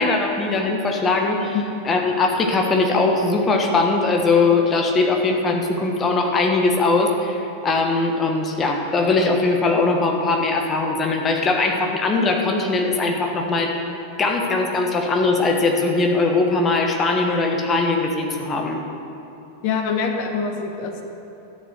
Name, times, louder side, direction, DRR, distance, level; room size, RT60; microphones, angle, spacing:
voice 1, 0.0-1.6 1.8-13.8 14.2-18.8, left 3 dB, 20° left, 2 dB, 1.4 m, -20 dB
voice 2, 19.6-21.0, left 5 dB, 45° left, 4 dB, 1.2 m, -24 dB
12.0 x 7.3 x 6.4 m, 2.9 s
figure-of-eight pair, 90°, 0 cm